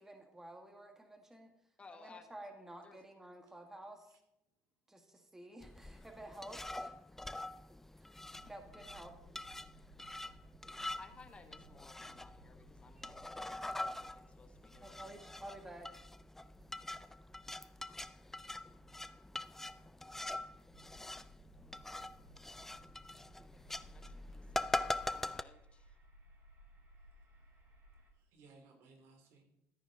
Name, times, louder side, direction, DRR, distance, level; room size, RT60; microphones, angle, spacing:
voice 1, 0.0-1.5 1.9-4.2 4.9-6.9 8.0-9.1 13.0-14.1 14.7-15.9, right 1 dB, 10° right, 5 dB, 1.7 m, -52 dB
voice 2, 1.8-2.3 2.8-3.0 11.0-15.1 23.5-26.0, left 4 dB, 25° left, 8 dB, 1.1 m, -59 dB
sound 1, 5.6-25.4, left 2 dB, 5° left, 0.4 m, -44 dB
sound 2, 8.2-28.1, right 1 dB, 50° right, 5.3 m, -64 dB
voice 3, 27.0-27.6 27.9-29.4, right 3 dB, 70° right, 4 dB, 2.9 m, -65 dB
13.5 x 9.4 x 3.9 m, 0.85 s
cardioid pair, 110°, 5 cm